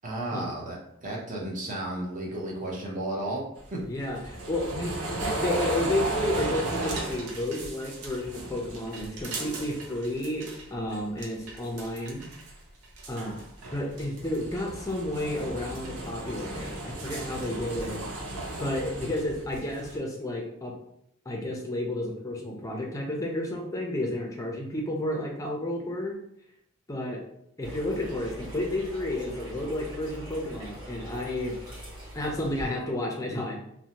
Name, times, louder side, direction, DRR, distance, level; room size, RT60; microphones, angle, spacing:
voice 1, 0.0-3.4 3.7-3.8, right 1 dB, 35° right, -2 dB, 0.6 m, -33 dB
sound 1, 3.6-10.6 10.9-12.5 12.8-20.0, right 2 dB, 85° right, 0.6 m, -35 dB
voice 2, 3.9-12.2 13.1-13.4 13.7-18.0 18.6-20.7 21.3-26.2 26.9-27.2 27.6-31.5 32.1-33.6, left 1 dB, 15° left, -1 dB, 0.4 m, -31 dB
sound 2, 27.6-32.7, equal, 20° right, 1.2 m, -42 dB
2.6 x 2.1 x 2.8 m, 0.75 s
head